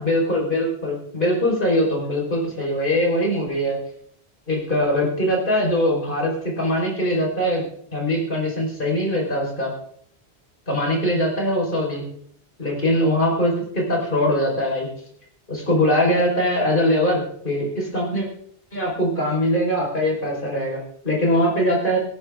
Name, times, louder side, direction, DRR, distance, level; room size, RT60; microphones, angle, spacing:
voice 1, 0.0-3.8 4.5-9.7 10.7-12.0 12.6-14.9 15.5-18.3 18.7-22.0, equal, 50° left, -2 dB, 5.0 m, -22 dB
17.5 x 16.5 x 3.7 m, 0.66 s
omnidirectional pair, 1.1 m